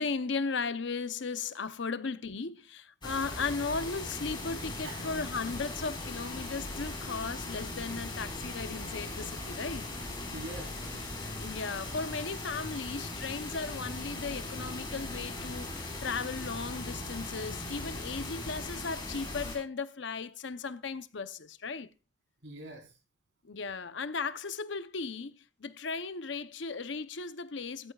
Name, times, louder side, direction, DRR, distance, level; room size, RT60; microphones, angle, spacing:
voice 1, 0.0-9.8 11.4-21.9 23.4-25.3 25.6-27.9, left 4 dB, 65° left, 0.8 m, -36 dB
sound 1, 3.0-19.6, left 2 dB, 25° left, 4.6 m, -39 dB
voice 2, 10.2-11.1 13.2-13.3 14.4-14.6 22.4-23.0, right 2 dB, 65° right, 4.2 m, -46 dB
17.0 x 14.5 x 2.4 m
head